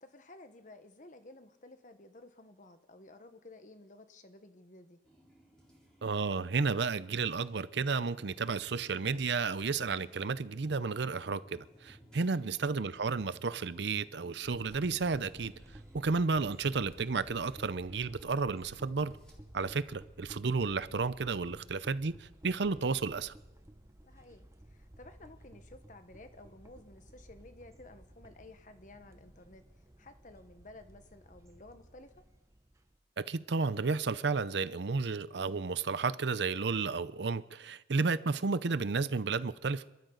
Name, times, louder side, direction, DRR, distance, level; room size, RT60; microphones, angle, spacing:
voice 1, 0.0-5.0 24.0-32.2, left 2 dB, 40° left, 1.2 m, -54 dB
sound 1, 5.0-19.4, equal, 5° left, 3.9 m, -59 dB
voice 2, 6.0-15.5 15.9-19.1 19.5-23.3 33.2-39.8, right 4 dB, 65° right, 0.6 m, -32 dB
sound 2, 14.4-33.0, right 1 dB, 15° right, 0.7 m, -55 dB
27.5 x 13.5 x 4.0 m
head